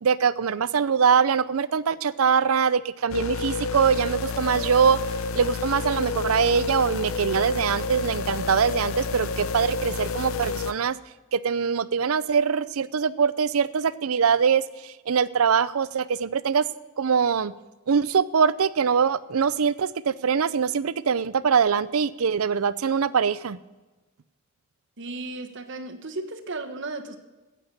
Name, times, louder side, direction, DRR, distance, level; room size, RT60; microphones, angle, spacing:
voice 1, 0.0-5.0 5.3-10.9 11.3-16.6 17.0-17.5 17.9-23.6, right 6 dB, 80° right, 18 dB, 0.5 m, -23 dB
sound 1, 3.1-10.7, left 4 dB, 70° left, 0.7 m, -30 dB
voice 2, 25.0-27.2, right 2 dB, 60° right, 6 dB, 1.3 m, -35 dB
14.5 x 8.6 x 6.8 m, 1.2 s
head